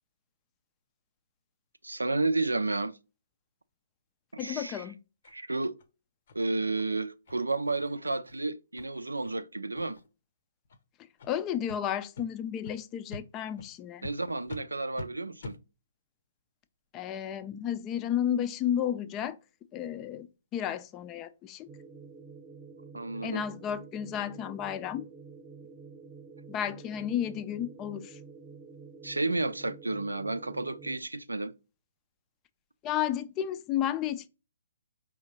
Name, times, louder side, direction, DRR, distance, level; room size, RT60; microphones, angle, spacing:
voice 1, 1.8-3.0 4.3-4.8 5.3-5.8 6.3-10.0 14.0-15.6 22.9-23.4 29.0-31.5, right 2 dB, 80° right, 0.4 m, -31 dB
voice 2, 4.4-5.0 11.3-14.1 16.9-19.4 19.7-20.3 20.5-21.7 23.2-25.0 26.5-28.2 32.8-34.3, left 10 dB, 25° left, 0.4 m, -32 dB
sound 1, 5.2-5.4 5.8-5.9 6.3-6.4 6.8-6.9 7.3-7.4 7.7-7.9 8.2-8.4 8.8-8.9 9.2-9.4 9.7-10.1 10.6-10.8 11.2-11.3 11.7-11.8 12.1-12.3 12.6-12.7 13.1-13.2 13.6-13.7 14.0-14.1 14.5-14.6 14.9-15.1 15.4-15.6, left 3 dB, 50° left, 0.7 m, -44 dB
sound 2, 21.7-31.0, right 4 dB, 20° right, 0.9 m, -49 dB
4.9 x 3.6 x 2.8 m
figure-of-eight pair, 130°, 0 cm